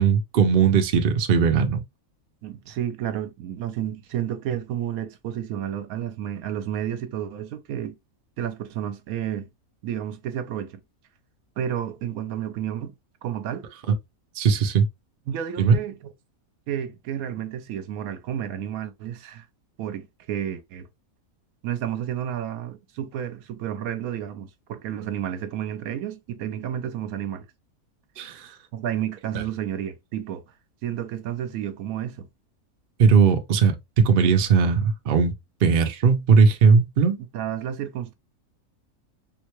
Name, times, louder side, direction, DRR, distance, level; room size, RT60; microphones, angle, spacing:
voice 1, 0.0-1.8 14.4-14.9 15.6-15.7 28.2-28.5 29.3-29.4 33.0-35.3 35.6-37.2, right 5 dB, 60° right, 0.5 m, -19 dB
voice 2, 2.4-8.0 8.4-9.5 9.8-10.8 11.6-12.9 13.2-13.6 15.3-16.0 16.7-19.5 19.8-20.9 21.6-27.5 28.7-30.4 30.8-32.3 37.3-38.1, right 10 dB, 75° right, 1.0 m, -31 dB
3.8 x 2.1 x 3.0 m
omnidirectional pair, 1.6 m